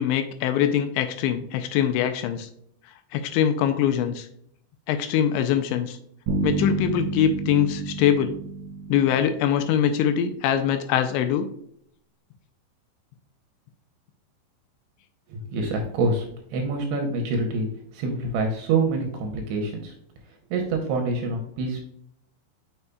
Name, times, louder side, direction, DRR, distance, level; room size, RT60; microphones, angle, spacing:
voice 1, 0.0-2.5 3.1-4.3 4.9-6.0 6.4-8.3 8.9-11.5, left 9 dB, 85° left, 9 dB, 2.8 m, -23 dB
sound 1, 6.3-10.0, right 3 dB, 55° right, 2.3 m, -30 dB
voice 2, 15.3-17.7 17.9-19.9 20.5-21.8, right 3 dB, 75° right, 3 dB, 2.6 m, -26 dB
7.0 x 6.4 x 2.3 m, 0.69 s
omnidirectional pair, 5.4 m